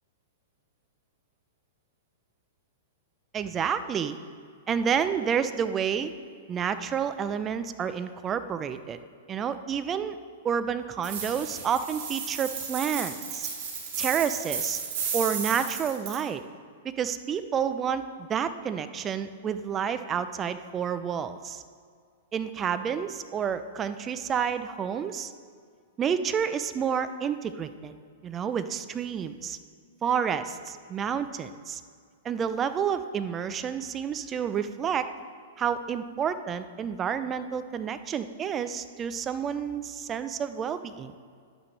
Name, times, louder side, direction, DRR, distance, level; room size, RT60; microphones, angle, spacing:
voice 1, 3.3-4.2 4.7-6.1 6.5-9.0 9.3-10.2 10.4-13.5 14.0-14.8 15.1-16.4 17.0-21.6 22.3-25.3 26.0-27.9 28.2-29.6 30.0-31.8 32.2-35.1 35.6-41.1, right 7 dB, 25° right, 11 dB, 0.5 m, -29 dB
sound 1, 11.0-16.2, right 6 dB, 55° right, 2.8 m, -33 dB
11.0 x 9.1 x 3.3 m, 2.1 s
hypercardioid pair, 120°, 0 cm